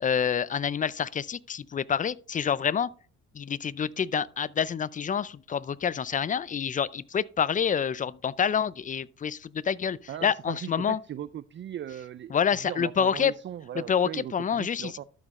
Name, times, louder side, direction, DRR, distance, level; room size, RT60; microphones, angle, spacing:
voice 1, 0.0-2.9 3.3-11.0 12.3-13.3 13.9-14.9, left 7 dB, 25° left, 0.4 m, -27 dB
voice 2, 10.1-12.4 12.6-15.0, right 10 dB, 40° right, 0.4 m, -38 dB
12.5 x 5.2 x 3.6 m
cardioid pair, 90°, 30 cm